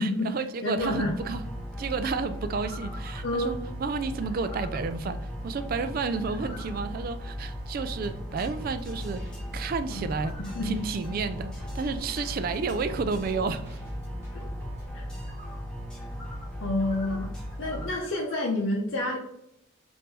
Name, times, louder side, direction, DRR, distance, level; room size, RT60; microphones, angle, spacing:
voice 1, 0.0-1.4 1.8-9.2 9.5-10.3 10.6-13.8, right 4 dB, 45° right, 0.3 m, -31 dB
voice 2, 0.6-1.1 3.2-3.5 9.9-10.1 10.5-10.7 14.3-14.4 14.9-15.1 16.6-17.3 17.6-19.2, left 1 dB, 65° left, 0.7 m, -28 dB
sound 1, 0.8-17.9, equal, 5° left, 0.9 m, -37 dB
sound 2, 2.4-3.4 4.2-4.8 6.0-6.8 10.1-10.5 15.2-15.6 16.0-16.5 16.8-18.3, left 1 dB, 40° left, 1.1 m, -47 dB
sound 3, 7.9-14.9, equal, 15° right, 1.6 m, -46 dB
3.7 x 2.6 x 4.1 m
head